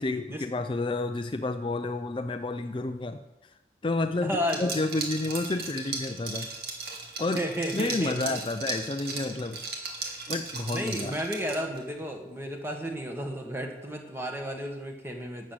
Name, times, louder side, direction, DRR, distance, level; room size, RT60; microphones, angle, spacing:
voice 1, 0.0-3.5 3.8-6.6 7.2-7.5 7.7-9.6 10.3-11.1, left 2 dB, 30° left, 8 dB, 0.5 m, -30 dB
voice 2, 4.2-4.7 7.3-8.4 10.1-10.4 10.7-15.5, equal, 15° right, 3 dB, 1.6 m, -33 dB
Liquid, 4.4-11.8, right 4 dB, 60° right, 2.2 m, -37 dB
12.5 x 7.4 x 7.9 m, 1.1 s
head